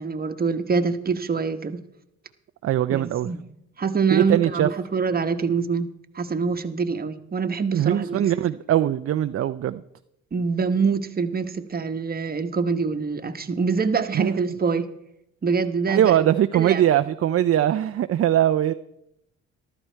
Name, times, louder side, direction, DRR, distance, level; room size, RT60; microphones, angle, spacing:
voice 1, 0.0-1.8 2.9-3.4 3.8-5.9 6.1-8.2 10.3-14.9 15.4-16.2 16.5-16.8, right 5 dB, 30° right, 8 dB, 1.2 m, -25 dB
voice 2, 2.6-3.3 4.1-4.7 7.7-9.8 14.1-14.3 15.9-18.7, right 11 dB, 50° right, 10 dB, 0.5 m, -21 dB
14.0 x 12.5 x 4.5 m, 0.81 s
cardioid pair, 90°, 30 cm